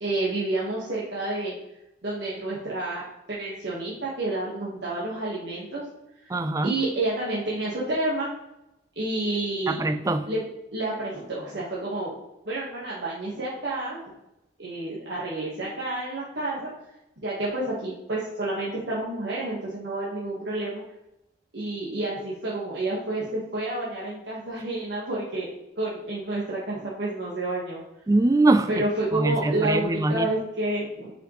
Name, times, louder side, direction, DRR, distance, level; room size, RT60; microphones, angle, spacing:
voice 1, 0.0-1.5 2.0-5.8 6.6-8.3 9.0-9.8 10.3-10.4 10.7-12.1 12.4-14.0 14.6-16.7 17.2-20.8 21.5-25.5 25.8-27.8 28.7-31.1, right 2 dB, 80° right, -7 dB, 1.4 m, -29 dB
voice 2, 6.3-6.7 9.7-10.3 28.1-28.8 29.1-30.3, right 2 dB, 20° right, 10 dB, 0.3 m, -22 dB
7.8 x 5.0 x 3.1 m, 0.88 s
head